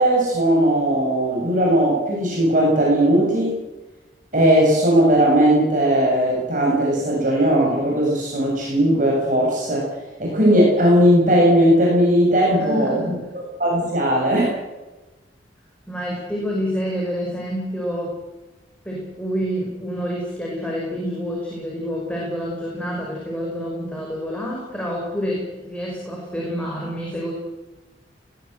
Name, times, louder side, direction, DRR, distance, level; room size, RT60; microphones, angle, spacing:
voice 1, 0.0-3.6 4.3-9.9 10.2-13.2 13.6-14.5, right 1 dB, 45° right, -3 dB, 7.8 m, -18 dB
voice 2, 12.6-13.1 15.9-18.2 18.8-27.3, equal, 5° left, -3 dB, 5.8 m, -28 dB
20.5 x 18.0 x 8.3 m, 1.1 s
head